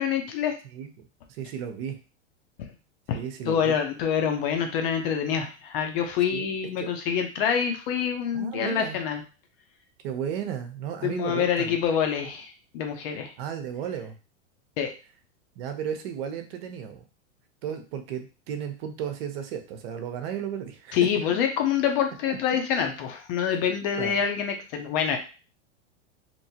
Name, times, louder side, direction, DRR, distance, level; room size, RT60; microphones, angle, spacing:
voice 1, 0.0-0.6 3.1-3.2 3.5-9.2 11.0-13.3 14.8-14.9 20.9-25.2, left 8 dB, 50° left, 5 dB, 0.7 m, -26 dB
voice 2, 0.7-2.0 3.1-3.8 6.3-6.5 6.8-6.9 8.3-9.0 10.0-11.7 13.4-14.2 15.6-17.0 17.6-21.0 22.3-22.4 23.5-23.6 24.0-24.2, right 8 dB, 55° right, 7 dB, 0.7 m, -34 dB
2.8 x 2.3 x 2.7 m, 0.33 s
hypercardioid pair, 130°, 36 cm